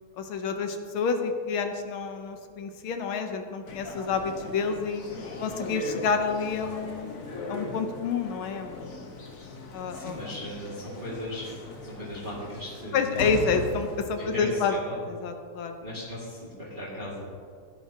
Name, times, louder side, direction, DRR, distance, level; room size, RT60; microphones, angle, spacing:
voice 1, 0.2-5.0 5.4-9.1 9.7-10.2 12.9-14.7 15.1-15.8, left 5 dB, 75° left, 6 dB, 1.6 m, -29 dB
sound 1, 3.6-14.0, left 2 dB, 50° left, 1.2 m, -39 dB
voice 2, 9.9-13.3 14.2-15.0 15.8-17.3, left 1 dB, 25° right, -9 dB, 2.1 m, -37 dB
15.5 x 10.0 x 2.8 m, 2.1 s
omnidirectional pair, 2.3 m